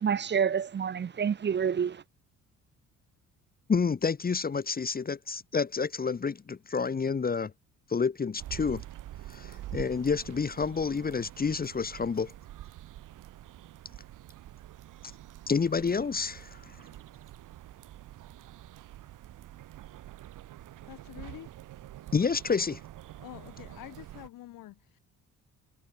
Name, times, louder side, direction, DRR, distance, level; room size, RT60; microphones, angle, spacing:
voice 1, 0.0-2.0, right 7 dB, 35° right, 0.7 m, -28 dB
voice 2, 3.7-7.5 7.9-8.8 9.3-12.3 15.5-16.8 22.1-22.8, left 5 dB, 30° left, 1.0 m, -29 dB
sound 1, 8.4-24.3, right 14 dB, 75° right, 1.1 m, -46 dB
voice 3, 20.9-21.5 23.2-25.0, left 15 dB, 85° left, 2.0 m, -47 dB
cardioid pair, 95°, 32 cm